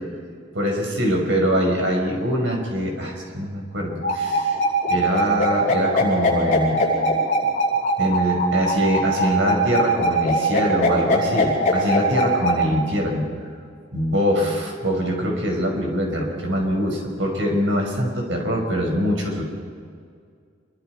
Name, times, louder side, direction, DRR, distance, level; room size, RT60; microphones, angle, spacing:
voice 1, 0.5-4.6 4.9-6.8 8.0-13.3 13.9-19.4, equal, 80° right, 1 dB, 5.1 m, -23 dB
sound 1, 4.0-12.6, left 2 dB, 45° left, 7.6 m, -21 dB
27.0 x 23.5 x 4.7 m, 2.1 s
head